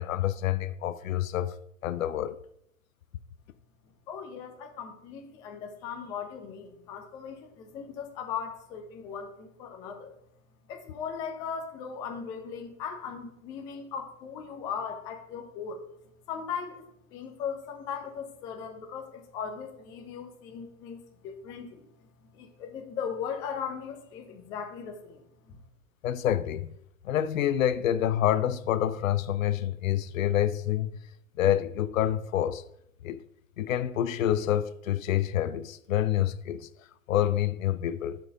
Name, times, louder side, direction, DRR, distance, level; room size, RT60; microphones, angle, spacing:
voice 1, 0.0-1.6 1.8-2.4 26.0-26.7 27.0-31.0 31.4-32.6 33.0-33.2 33.6-36.7 37.1-38.2, left 11 dB, 75° left, 0.5 m, -27 dB
voice 2, 4.1-10.1 10.7-15.8 16.3-16.8 17.1-21.8 22.2-25.2 25.5-25.6, left 7 dB, 10° left, 0.3 m, -38 dB
5.2 x 4.6 x 5.0 m
figure-of-eight pair, 105°, 41 cm